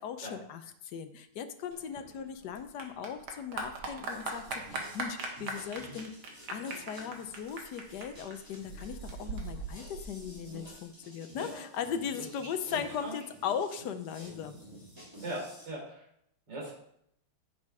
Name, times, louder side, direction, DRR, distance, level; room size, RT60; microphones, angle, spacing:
voice 1, 0.0-6.1 6.5-14.6, left 7 dB, 65° left, 9 dB, 1.1 m, -38 dB
Clapping / Applause, 1.7-10.7, right 3 dB, 70° right, 2.2 m, -41 dB
sound 1, 4.1-15.7, equal, 10° right, 3.5 m, -52 dB
voice 2, 15.2-16.0 16.5-16.7, right 1 dB, 55° right, -3 dB, 4.1 m, -39 dB
7.9 x 7.5 x 4.8 m, 0.74 s
omnidirectional pair, 2.3 m